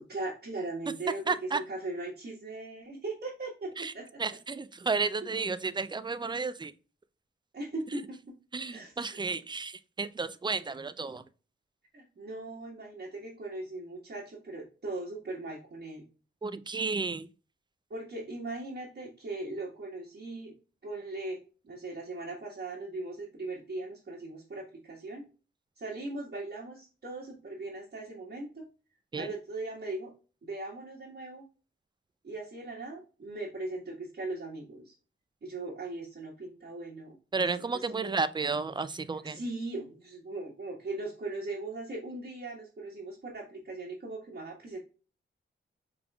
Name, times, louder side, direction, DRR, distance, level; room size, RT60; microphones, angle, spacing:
voice 1, 0.0-3.7 3.9-4.2 7.5-8.2 8.7-9.2 11.9-16.0 17.9-20.5 20.8-21.4 21.6-25.2 25.8-28.6 29.2-30.1 30.4-31.4 32.2-34.9 35.4-37.2 38.0-38.2 39.2-44.8, right 2 dB, 55° right, 1.6 m, -39 dB
voice 2, 1.3-1.6 3.8-3.9 4.2-6.7 7.9-8.0 8.5-11.2 16.4-17.3 29.1-29.3 37.3-39.4, right 4 dB, 20° right, 0.4 m, -32 dB
5.1 x 3.4 x 2.3 m
cardioid pair, 75°, 21 cm